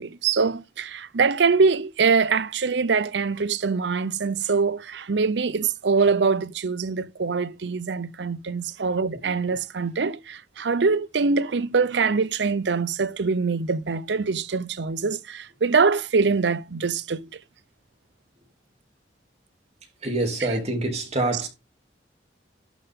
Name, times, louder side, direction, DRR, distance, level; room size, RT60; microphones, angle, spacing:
voice 1, 0.0-17.3 20.4-20.5 21.3-21.4, right 4 dB, 70° right, 0.6 m, -23 dB
voice 2, 20.0-21.5, right 2 dB, 40° right, 2.9 m, -26 dB
11.5 x 5.4 x 3.6 m
head